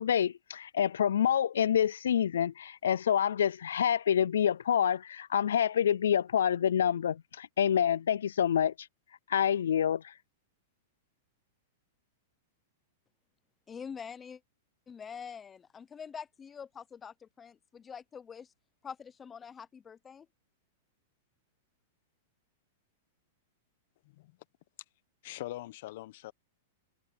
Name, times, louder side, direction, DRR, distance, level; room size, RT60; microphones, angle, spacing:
voice 1, 0.0-8.9 9.3-10.1, left 9 dB, 85° left, 0.3 m, -27 dB
voice 2, 13.7-14.4 14.9-18.5 18.8-20.3, left 7 dB, 20° left, 0.8 m, -45 dB
voice 3, 25.2-26.3, left 16 dB, 60° left, 1.2 m, -42 dB
hypercardioid pair, 125°, 0 cm